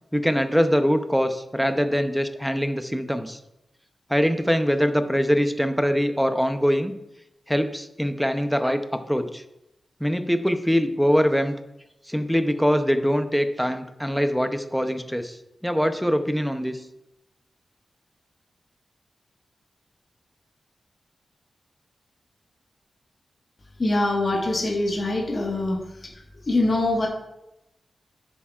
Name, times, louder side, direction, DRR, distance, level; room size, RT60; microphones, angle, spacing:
voice 1, 0.1-3.4 4.1-6.9 7.5-8.8 9.1-9.4 10.0-11.5 12.1-15.4 15.6-16.8, equal, ahead, 8 dB, 0.5 m, -23 dB
voice 2, 23.8-25.8 26.5-27.1, left 2 dB, 35° left, -2 dB, 1.4 m, -23 dB
10.5 x 7.2 x 2.4 m, 0.86 s
wide cardioid pair, 165°, 0 cm